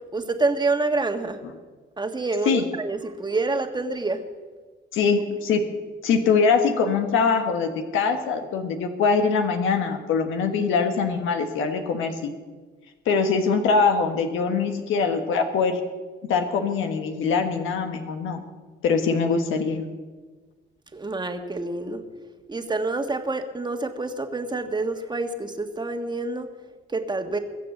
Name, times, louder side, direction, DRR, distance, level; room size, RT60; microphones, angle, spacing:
voice 1, 0.1-1.4 2.0-4.2 20.9-22.0 22.5-26.5 26.9-27.4, right 3 dB, 20° right, 6 dB, 1.6 m, -27 dB
voice 2, 4.9-5.6 6.0-12.3 13.0-15.8 16.3-18.4 18.8-19.8, left 5 dB, 85° left, 6 dB, 1.4 m, -23 dB
22.0 x 7.5 x 7.3 m, 1.4 s
cardioid pair, 90°, 20 cm